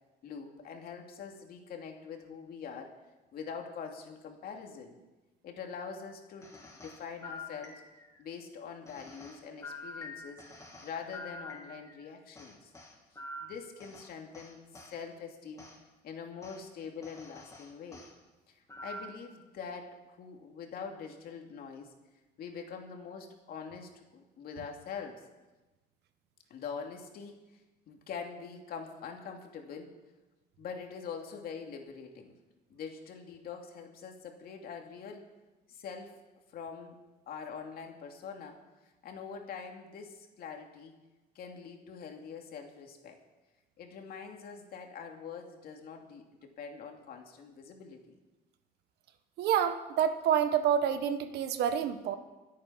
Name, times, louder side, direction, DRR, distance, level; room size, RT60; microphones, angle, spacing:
voice 1, 0.2-2.9 3.3-5.0 5.4-7.8 8.2-10.4 10.8-12.7 13.4-14.6 14.9-15.7 16.0-18.0 18.5-21.9 22.4-25.2 26.5-27.4 27.9-29.9 30.6-32.3 32.7-35.2 35.7-36.1 36.5-37.0 37.3-38.6 38.8-41.0 41.3-43.2 43.8-48.2, left 6 dB, 65° left, 3 dB, 2.6 m, -44 dB
sound 1, 6.4-8.2 8.8-12.0 12.3-15.0 15.6-15.8 16.4-16.6 17.0-18.1 18.7-19.3, left 2 dB, 20° left, 2.7 m, -47 dB
voice 2, 49.4-52.1, right 9 dB, 75° right, 9 dB, 1.3 m, -28 dB
25.0 x 8.6 x 5.7 m, 1.1 s
cardioid pair, 110°, 17 cm